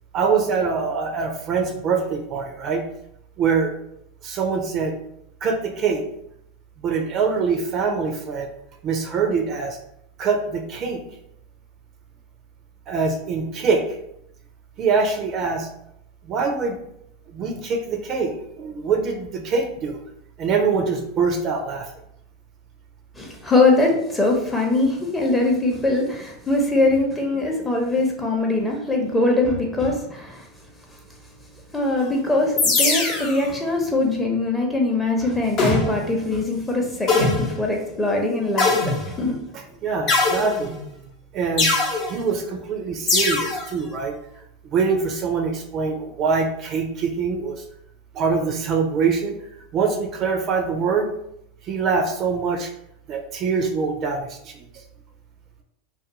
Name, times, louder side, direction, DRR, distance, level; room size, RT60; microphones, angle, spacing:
voice 1, 0.1-2.8 3.4-3.7 4.2-4.9 5.4-6.0 6.8-8.5 8.8-9.8 10.2-11.0 12.9-14.0 14.8-15.7 16.2-16.8 17.3-20.0 20.4-21.9 39.8-40.8 41.3-41.7 42.1-44.2 44.7-47.6 48.1-49.4 49.7-51.1 51.7-52.7 53.1-54.6, right 5 dB, 45° right, 2 dB, 0.5 m, -24 dB
voice 2, 23.1-30.5 31.7-39.4, left 2 dB, 10° left, 0 dB, 0.7 m, -22 dB
sound 1, 32.6-33.4 35.6-36.1 37.1-37.6 38.6-39.3 40.1-40.8 41.6-42.1 43.1-43.7, left 3 dB, 45° left, 0.7 m, -21 dB
2.4 x 2.2 x 2.9 m, 0.75 s
hypercardioid pair, 95°, 0 cm